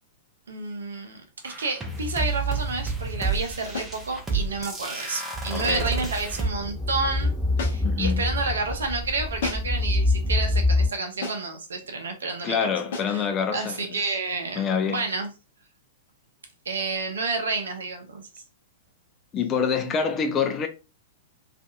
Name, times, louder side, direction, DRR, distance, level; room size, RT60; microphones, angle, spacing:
voice 1, 0.5-7.4 7.7-12.7 13.1-13.3 13.5-15.3 16.7-18.4, right 3 dB, 75° right, 0.7 m, -30 dB
sound 1, 1.4-6.5, right 3 dB, 15° right, 0.7 m, -30 dB
sound 2, 3.7-4.0 5.6-5.9 7.6-8.0 9.4-9.8 11.2-11.6 12.9-13.2, left 4 dB, 60° left, 0.8 m, -34 dB
voice 2, 5.5-5.9 7.8-8.2 12.4-14.1 14.6-15.1 19.3-20.7, left 6 dB, 30° left, 0.5 m, -26 dB
sound 3, 5.5-10.9, left 2 dB, 5° left, 1.2 m, -26 dB
2.6 x 2.5 x 2.2 m
figure-of-eight pair, 105°, 0 cm